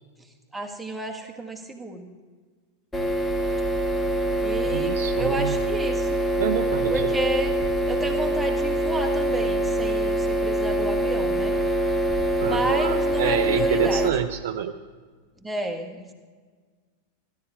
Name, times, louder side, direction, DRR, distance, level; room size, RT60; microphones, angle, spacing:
voice 1, 0.5-2.1 4.4-6.2 6.9-7.6 7.9-11.5 12.4-14.1 15.4-16.1, right 1 dB, 5° right, 2 dB, 1.6 m, -31 dB
sound 1, 2.9-14.1, right 1 dB, 10° left, 1.4 m, -24 dB
voice 2, 4.7-5.6 6.4-7.1 12.4-14.7, right 9 dB, 55° right, 5 dB, 0.6 m, -27 dB
16.0 x 12.0 x 4.8 m, 1.5 s
figure-of-eight pair, 90°, 0 cm